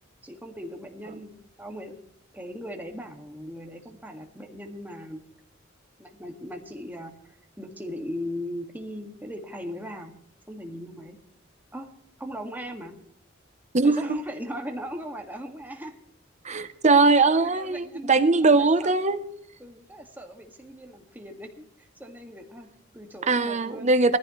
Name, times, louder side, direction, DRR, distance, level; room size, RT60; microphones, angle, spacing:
voice 1, 0.2-1.3 1.6-2.0 2.3-5.2 6.0-7.1 7.6-10.1 10.5-11.2 11.7-11.9 12.2-12.9 13.8-16.0 17.4-18.1 18.4-18.9 19.6-23.9, equal, 10° right, 2 dB, 2.1 m, -38 dB
voice 2, 13.7-14.1 16.4-19.2 23.3-24.2, right 3 dB, 35° right, 11 dB, 0.9 m, -20 dB
20.0 x 14.5 x 3.2 m, 0.71 s
head